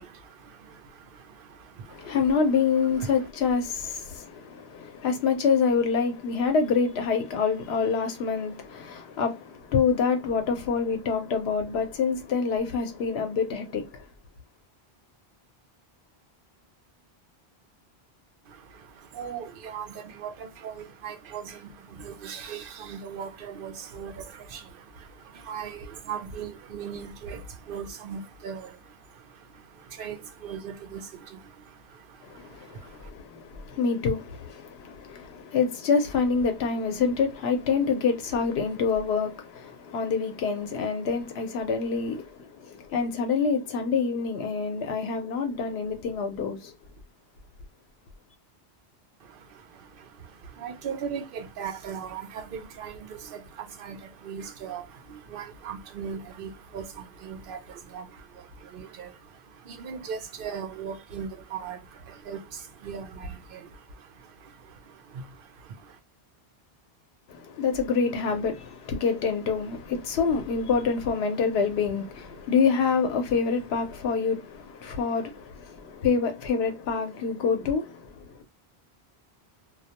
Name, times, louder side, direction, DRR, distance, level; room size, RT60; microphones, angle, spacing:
voice 1, 0.0-2.2 3.0-3.1 18.5-33.1 49.2-66.0, right 7 dB, 65° right, 0.7 m, -39 dB
voice 2, 1.9-13.9 32.2-46.7 67.3-78.4, left 5 dB, 80° left, 0.9 m, -26 dB
2.3 x 2.1 x 2.7 m
omnidirectional pair, 1.1 m